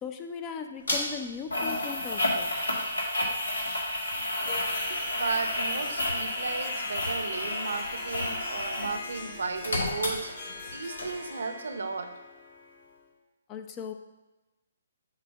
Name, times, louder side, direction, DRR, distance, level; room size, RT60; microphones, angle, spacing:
voice 1, 0.0-2.6 13.5-13.9, left 6 dB, 20° left, 7 dB, 0.5 m, -38 dB
sound 1, 0.9-1.0 1.5-9.0 9.2-10.7 11.0-11.1, left 1 dB, 85° left, 1.7 m, -30 dB
Harp, 4.4-13.1, left 3 dB, 45° left, 1.9 m, -43 dB
voice 2, 4.9-12.1, right 4 dB, 75° right, 7 dB, 0.7 m, -35 dB
7.2 x 2.8 x 5.2 m, 1.1 s
hypercardioid pair, 145°, 0 cm